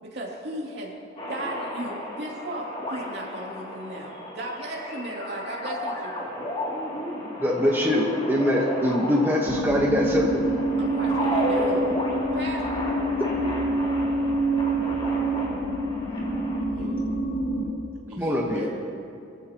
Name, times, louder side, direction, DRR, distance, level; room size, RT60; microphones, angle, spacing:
voice 1, 0.0-1.0 1.3-6.4 10.8-11.9 12.3-12.6, right 1 dB, 60° right, -4 dB, 2.9 m, -35 dB
sound 1, 1.2-16.6, left 1 dB, 30° left, 2.7 m, -33 dB
voice 2, 7.4-10.4 18.2-18.7, left 1 dB, 10° right, -2 dB, 1.2 m, -23 dB
sound 2, 9.4-17.7, right 2 dB, 75° left, 2.4 m, -27 dB
voice 3, 16.7-17.1 18.1-18.7, left 2 dB, 85° right, -5 dB, 3.7 m, -41 dB
22.5 x 15.0 x 3.0 m, 2.6 s
head